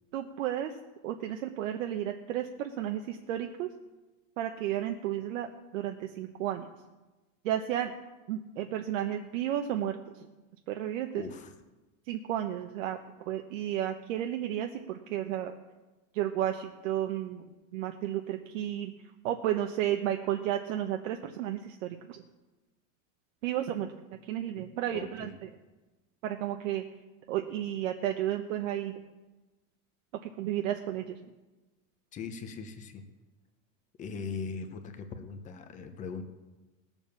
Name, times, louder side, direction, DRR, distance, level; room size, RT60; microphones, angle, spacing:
voice 1, 0.1-0.7 1.0-3.7 4.4-5.5 5.7-6.6 7.4-7.9 8.3-10.0 10.7-11.2 12.1-13.0 13.3-15.5 16.1-18.9 19.2-22.2 23.4-23.9 24.3-25.3 26.2-26.8 27.3-28.9 30.2-31.2, right 11 dB, 75° right, 5 dB, 1.1 m, -32 dB
voice 2, 11.1-11.5 24.9-25.3 32.1-33.0 34.0-36.2, left 5 dB, 20° left, 7 dB, 0.9 m, -40 dB
18.5 x 7.2 x 7.1 m, 1.1 s
supercardioid pair, 175°, 39 cm